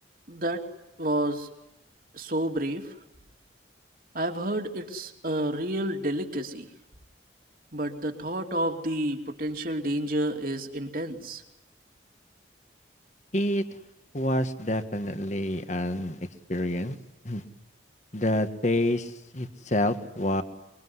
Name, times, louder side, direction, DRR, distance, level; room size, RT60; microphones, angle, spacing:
voice 1, 0.3-0.6 1.0-1.5 2.1-2.9 4.1-6.7 7.7-11.4, right 1 dB, 50° right, 4 dB, 2.8 m, -30 dB
voice 2, 13.3-13.6 14.1-16.2 16.5-16.9 17.2-17.4 18.1-20.4, left 1 dB, 40° left, 9 dB, 1.7 m, -27 dB
25.0 x 24.0 x 9.7 m, 0.87 s
head